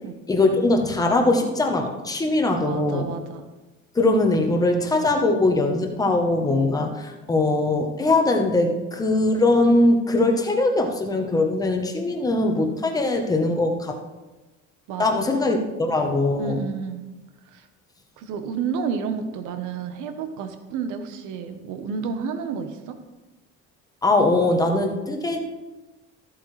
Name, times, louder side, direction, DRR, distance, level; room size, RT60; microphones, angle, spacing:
voice 1, 0.3-3.1 3.9-14.0 15.0-16.6 24.0-25.4, left 2 dB, 10° left, 3 dB, 0.9 m, -21 dB
voice 2, 2.7-3.4 14.9-15.3 16.4-17.0 17.5-17.7 18.2-22.9, right 6 dB, 70° right, 8 dB, 1.1 m, -30 dB
14.0 x 8.2 x 3.2 m, 1.1 s
cardioid pair, 180°, 31 cm